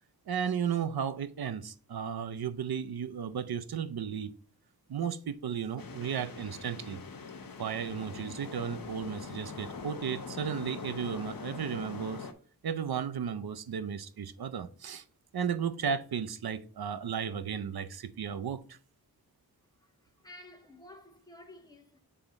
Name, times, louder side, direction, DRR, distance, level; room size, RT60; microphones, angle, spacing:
voice 1, 0.3-4.3 4.9-7.0 7.6-12.3 12.6-15.0 15.3-18.8, right 7 dB, 75° right, 0.6 m, -34 dB
sound 1, 5.8-12.3, left 5 dB, 65° left, 0.7 m, -43 dB
voice 2, 19.7-22.0, left 1 dB, 10° left, 1.0 m, -53 dB
7.0 x 3.6 x 3.9 m
wide cardioid pair, 80°, 37 cm